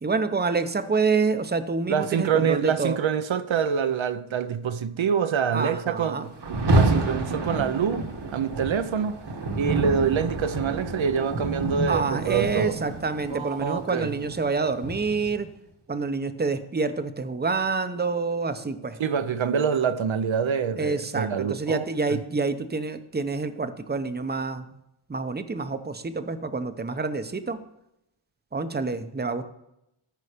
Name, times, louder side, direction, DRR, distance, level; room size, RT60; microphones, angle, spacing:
voice 1, 0.0-3.0 5.5-6.3 11.9-15.5 15.9-19.0 20.8-24.7 25.1-27.6 28.5-29.4, right 4 dB, 20° right, 0.7 m, -27 dB
voice 2, 1.9-9.2 9.6-12.8 13.3-14.2 19.0-22.2, right 7 dB, 70° right, 0.8 m, -26 dB
Rain, 6.4-15.5, right 2 dB, 55° right, 1.4 m, -28 dB
14.0 x 5.6 x 5.0 m
wide cardioid pair, 115°, 48 cm